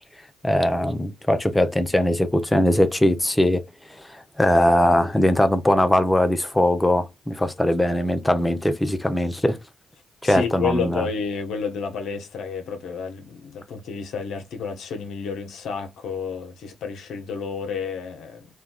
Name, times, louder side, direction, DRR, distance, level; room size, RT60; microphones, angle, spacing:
voice 1, 0.4-3.6 3.9-9.6 10.2-11.1, left 1 dB, 15° left, 0.7 m, -20 dB
voice 2, 10.2-18.5, left 5 dB, 75° left, 0.7 m, -30 dB
3.4 x 2.3 x 2.3 m
supercardioid pair, 50°, 0 cm